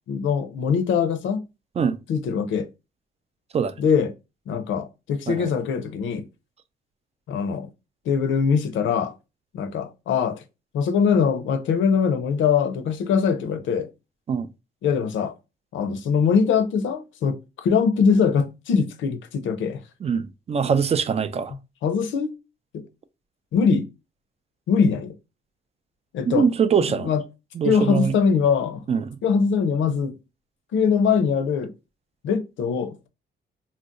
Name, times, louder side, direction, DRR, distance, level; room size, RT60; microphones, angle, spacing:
voice 1, 0.1-1.4 2.1-2.7 3.8-4.1 4.5-6.2 7.3-7.7 8.1-9.1 9.5-10.4 10.7-13.9 14.8-15.3 15.7-19.8 21.8-22.3 22.7-22.8 23.5-23.8 24.7-25.1 26.1-26.5 26.8-27.2 27.6-28.8 29.2-30.1 30.7-31.7 32.2-33.1, left 6 dB, 75° left, 0.6 m, -22 dB
voice 2, 20.0-21.5 26.3-27.1 27.5-28.2 28.9-29.2, right 6 dB, 30° right, 0.4 m, -23 dB
2.6 x 2.1 x 3.6 m
cardioid pair, 90°, 20 cm